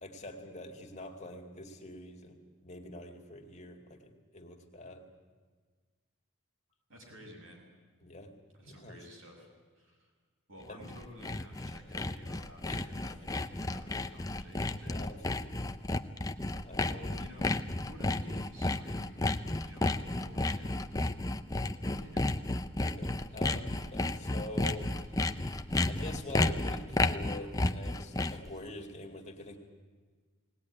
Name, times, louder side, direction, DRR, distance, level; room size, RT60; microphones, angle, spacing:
voice 1, 0.0-2.4 2.6-5.1 8.0-8.3 8.6-9.0 10.7-10.8 12.6-13.2 14.8-15.7 16.1-16.3 16.6-17.1 22.8-25.4 25.9-29.6, left 1 dB, 30° left, 3 dB, 2.2 m, -45 dB
voice 2, 6.9-7.7 8.6-10.1 10.5-15.0 16.9-21.1 21.8-22.3, equal, 65° right, 0 dB, 6.1 m, -53 dB
Sawing, 10.7-28.5, left 2 dB, 15° left, 0.6 m, -32 dB
20.0 x 18.5 x 9.7 m, 1.5 s
head